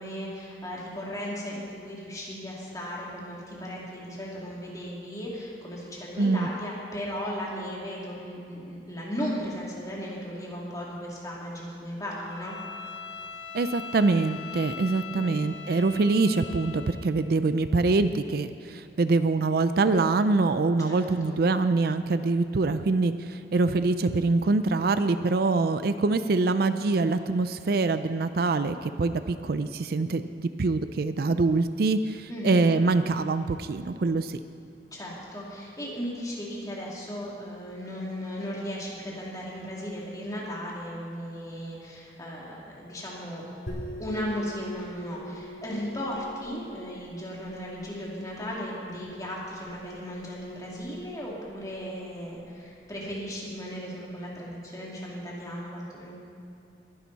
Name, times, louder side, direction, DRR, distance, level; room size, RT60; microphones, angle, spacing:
voice 1, 0.0-12.6 15.1-15.5 20.9-21.4 32.3-32.7 34.9-43.4 44.0-56.1, equal, 20° left, -5 dB, 2.8 m, -36 dB
voice 2, 6.2-6.5 13.5-34.4, right 3 dB, 60° right, 11 dB, 0.4 m, -24 dB
Bowed string instrument, 12.3-17.1, left 6 dB, 75° left, 1.0 m, -41 dB
sound 1, 43.7-53.0, equal, 90° left, 2.9 m, -45 dB
21.5 x 10.5 x 4.1 m, 2.6 s
head